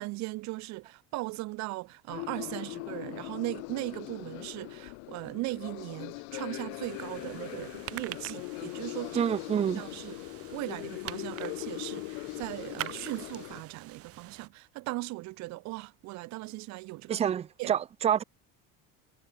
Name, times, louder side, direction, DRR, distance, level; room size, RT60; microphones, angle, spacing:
voice 1, 0.0-9.3 9.7-10.2 10.5-17.3 17.6-17.7, right 21 dB, 65° right, 5.3 m, -38 dB
sound 1, 2.1-13.6, left 40 dB or more, 85° left, 2.2 m, -41 dB
sound 2, 6.8-14.5, right 14 dB, 50° right, 6.8 m, -45 dB
voice 2, 9.1-9.8 17.1-18.2, right 9 dB, 20° right, 0.5 m, -27 dB
cardioid pair, 145°, 30 cm